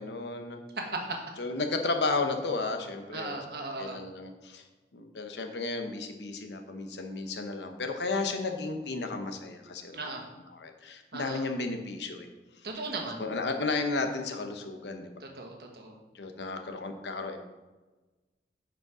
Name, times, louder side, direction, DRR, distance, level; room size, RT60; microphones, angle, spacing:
voice 1, 0.0-0.6 1.4-3.4 3.8-4.6 4.9-10.0 10.5-12.3 13.2-15.1 16.1-17.4, left 3 dB, 85° left, 5 dB, 0.9 m, -33 dB
voice 2, 0.8-1.2 3.1-4.0 9.9-10.2 11.1-11.4 12.6-13.2 15.2-16.0, right 2 dB, 65° right, 2 dB, 1.3 m, -37 dB
7.6 x 5.2 x 4.8 m, 1.2 s
head